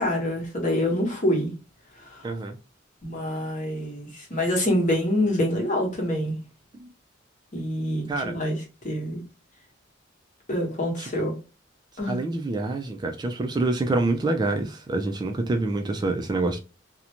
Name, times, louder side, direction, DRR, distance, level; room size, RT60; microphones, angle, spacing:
voice 1, 0.0-1.5 2.0-2.2 3.0-6.3 7.5-8.6 8.8-9.2 10.5-11.3 12.0-12.1, left 1 dB, 40° left, 1.0 m, -26 dB
voice 2, 2.2-2.6 6.7-6.9 8.1-8.4 11.0-11.3 12.1-16.6, right 2 dB, 20° right, 0.3 m, -27 dB
2.5 x 2.1 x 2.9 m
head